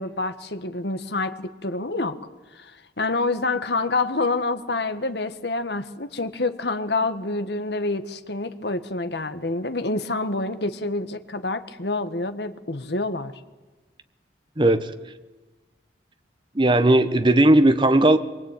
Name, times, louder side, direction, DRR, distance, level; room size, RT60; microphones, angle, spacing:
voice 1, 0.0-2.2 2.5-13.3, left 2 dB, 65° left, 11 dB, 1.5 m, -27 dB
voice 2, 14.6-14.9 16.6-18.2, right 1 dB, 25° right, 10 dB, 1.1 m, -17 dB
24.5 x 23.0 x 9.1 m, 1.2 s
head